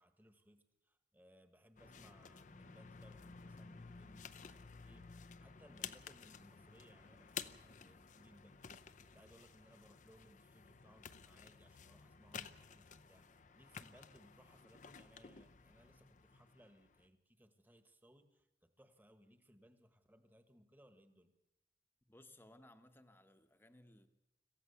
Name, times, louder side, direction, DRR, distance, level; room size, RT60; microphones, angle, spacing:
voice 1, 0.0-8.6 9.0-21.3, equal, 10° right, 1.3 m, -66 dB
sound 1, 1.8-17.1, left 6 dB, 45° left, 0.6 m, -53 dB
voice 2, 22.1-24.1, left 1 dB, 15° left, 1.0 m, -62 dB
26.5 x 15.0 x 7.0 m
head